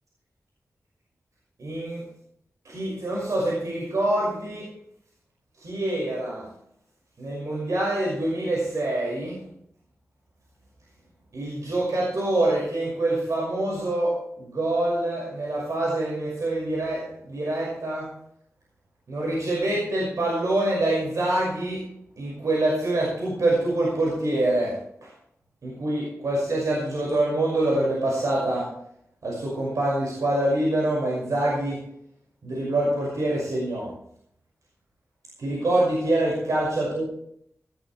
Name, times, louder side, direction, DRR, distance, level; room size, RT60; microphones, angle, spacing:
voice 1, 1.6-2.1 2.6-4.7 5.6-6.5 7.2-9.4 11.3-18.1 19.1-21.8 22.2-24.8 25.0-25.1 25.6-28.7 29.2-31.8 32.4-33.9 35.4-37.0, right 1 dB, 85° right, -4 dB, 5.8 m, -25 dB
17.0 x 14.0 x 3.3 m, 0.70 s
wide cardioid pair, 115°, 5 cm